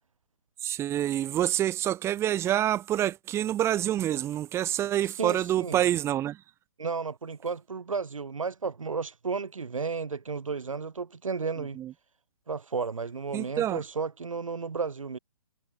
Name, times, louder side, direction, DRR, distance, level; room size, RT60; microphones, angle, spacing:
voice 1, 0.6-6.4 11.8-11.9 13.3-13.8, right 12 dB, 15° right, 3.6 m, -27 dB
voice 2, 5.2-5.8 6.8-11.8 12.5-15.2, right 5 dB, 65° right, 2.6 m, -33 dB
figure-of-eight pair, 135°, 18 cm